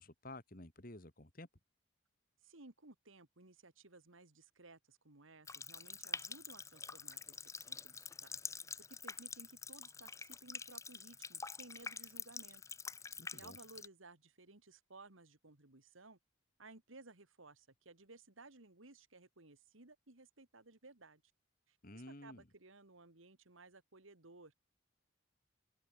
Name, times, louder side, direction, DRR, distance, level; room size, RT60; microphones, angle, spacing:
voice 1, 0.0-1.5 13.2-13.6 21.8-22.4, left 1 dB, 45° left, 2.7 m, -52 dB
voice 2, 2.4-8.6 8.9-12.6 13.3-16.2 16.6-21.2 21.7-24.5, right 3 dB, 85° right, 2.4 m, -59 dB
Water tap faucet, 5.4-13.9, left 5 dB, 15° left, 1.1 m, -47 dB
head